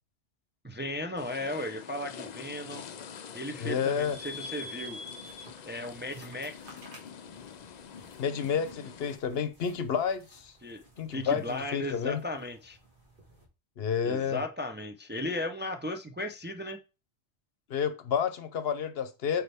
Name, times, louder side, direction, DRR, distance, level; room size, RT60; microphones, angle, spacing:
voice 1, 0.6-2.8 3.3-5.0 5.7-6.8 10.6-10.8 11.1-12.8 14.0-16.8, left 1 dB, 15° right, 0.5 m, -36 dB
sound 1, 1.2-9.2, left 7 dB, 50° left, 0.6 m, -46 dB
voice 2, 3.6-4.2 8.2-10.5 11.0-12.2 13.8-14.4 17.7-19.4, left 7 dB, 70° left, 0.9 m, -30 dB
sound 2, 4.0-13.4, left 2 dB, 50° right, 2.1 m, -49 dB
8.3 x 4.2 x 3.4 m
omnidirectional pair, 1.1 m